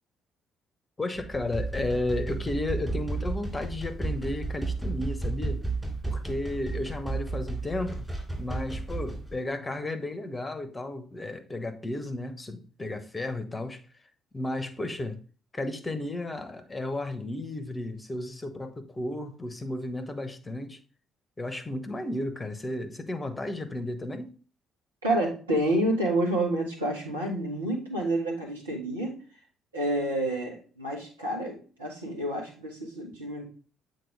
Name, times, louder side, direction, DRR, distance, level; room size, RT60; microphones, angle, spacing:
voice 1, 1.0-5.6 6.0-8.1 8.4-13.8 14.3-15.2 15.5-20.8 21.4-24.3, left 2 dB, 20° left, 1.0 m, -33 dB
sound 1, 1.2-9.3, right 3 dB, 5° right, 3.0 m, -33 dB
voice 2, 25.0-29.2 29.7-33.5, right 1 dB, 80° right, 1.4 m, -29 dB
7.9 x 4.4 x 3.3 m
figure-of-eight pair, 45°, 0 cm